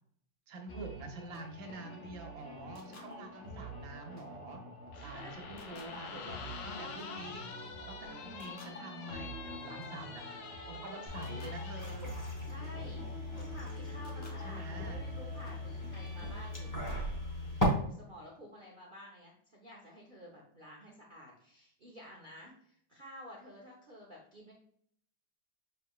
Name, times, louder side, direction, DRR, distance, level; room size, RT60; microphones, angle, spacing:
voice 1, 0.5-4.6 5.0-6.4 6.7-7.5 7.9-12.2 14.4-15.0, right 2 dB, 80° right, 3 dB, 1.6 m, -46 dB
sound 1, 0.7-17.0, right 1 dB, 60° left, 0.6 m, -48 dB
sound 2, 4.9-12.0, left 6 dB, 80° left, 1.4 m, -47 dB
voice 2, 5.0-5.8 10.5-10.6 12.4-17.2 17.5-24.5, equal, 55° right, -3 dB, 0.5 m, -52 dB
sound 3, 11.1-17.7, left 1 dB, 20° left, 0.6 m, -38 dB
6.2 x 3.3 x 2.3 m, 0.66 s
omnidirectional pair, 2.1 m